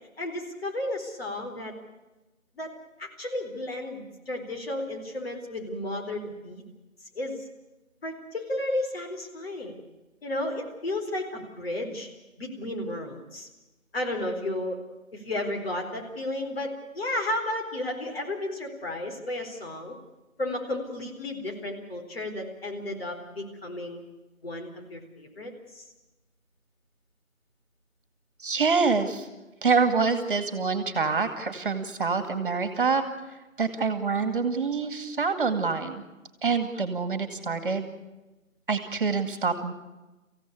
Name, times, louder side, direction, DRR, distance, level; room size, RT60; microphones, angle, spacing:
voice 1, 0.2-1.7 2.6-2.7 3.0-6.6 7.1-7.4 8.0-9.8 10.2-12.1 12.4-13.5 13.9-14.8 15.1-20.0 20.4-24.0 24.4-25.9, left 1 dB, 45° left, 3 dB, 4.4 m, -33 dB
voice 2, 28.4-29.3 29.6-36.0 36.4-37.9 38.7-39.7, right 4 dB, 40° right, 9 dB, 2.2 m, -26 dB
25.5 x 16.0 x 8.3 m, 1.1 s
figure-of-eight pair, 155°, 41 cm